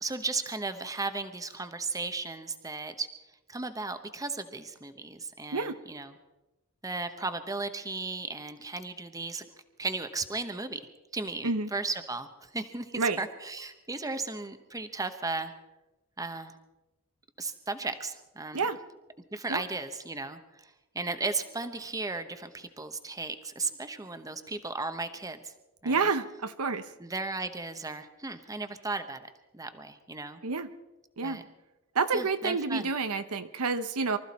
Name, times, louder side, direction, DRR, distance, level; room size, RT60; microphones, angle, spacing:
voice 1, 0.0-3.1 3.5-6.2 6.8-9.4 9.8-10.8 11.1-15.5 16.2-16.6 17.4-18.7 19.3-25.4 25.8-26.1 27.0-30.4 31.2-31.4 32.1-32.9, right 3 dB, 15° right, 9 dB, 0.9 m, -35 dB
voice 2, 25.8-26.9 30.4-30.7 31.2-31.4 31.9-34.2, right 4 dB, 75° right, 10 dB, 0.9 m, -29 dB
24.5 x 14.0 x 4.2 m, 1.0 s
head